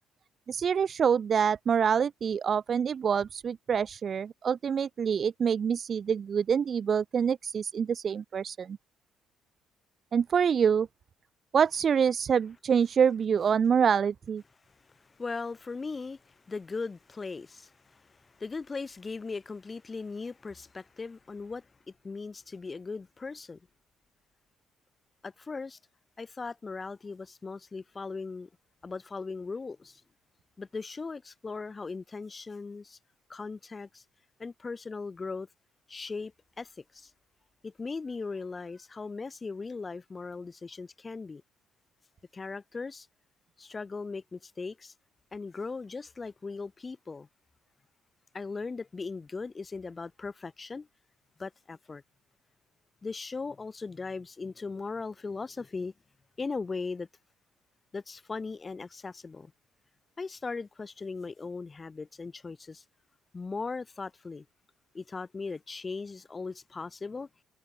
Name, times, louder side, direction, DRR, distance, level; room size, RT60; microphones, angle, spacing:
voice 1, 0.5-8.8 10.1-10.9 11.5-14.4, right 7 dB, 50° right, 0.6 m, -26 dB
voice 2, 14.9-21.7 22.0-23.6 25.2-25.8 26.2-28.5 28.8-30.0 30.6-33.0 33.3-34.0 34.4-35.5 35.9-37.1 37.6-41.4 42.3-43.1 43.6-44.9 45.3-47.3 48.3-50.9 51.4-52.0 53.0-55.9 56.4-57.1 57.9-59.5 60.2-62.8 63.3-64.4 64.9-67.3, left 4 dB, 30° left, 3.4 m, -38 dB
hypercardioid pair, 55°, 0 cm